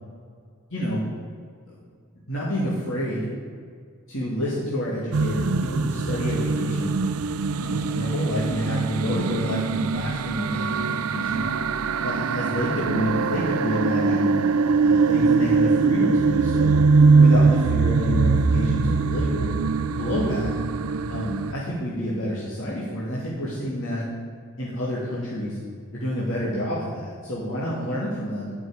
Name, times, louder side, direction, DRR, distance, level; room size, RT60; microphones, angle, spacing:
voice 1, 0.7-1.1 1.7-1.8 2.3-3.3 4.1-7.0 7.6-11.4 12.0-14.3 14.8-16.8 17.2-19.5 19.9-20.5 21.1-24.0 24.6-25.6 25.9-28.5, equal, 60° left, -7 dB, 2.5 m, -28 dB
sound 1, 5.1-21.5, right 4 dB, 90° right, 0.5 m, -22 dB
10.5 x 6.2 x 9.0 m, 2.1 s
head